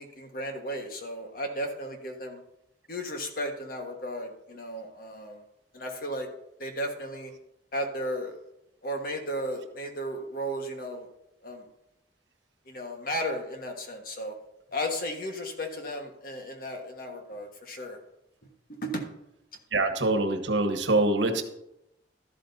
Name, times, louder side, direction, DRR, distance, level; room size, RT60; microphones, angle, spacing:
voice 1, 0.0-2.4 2.9-5.4 5.7-6.3 6.6-7.3 7.7-8.4 8.8-11.1 11.4-11.6 12.7-14.3 14.7-18.0 18.8-19.1, equal, 55° left, 3 dB, 1.5 m, -34 dB
voice 2, 19.7-21.4, right 2 dB, 85° right, 6 dB, 1.2 m, -24 dB
13.0 x 12.0 x 2.8 m, 0.85 s
head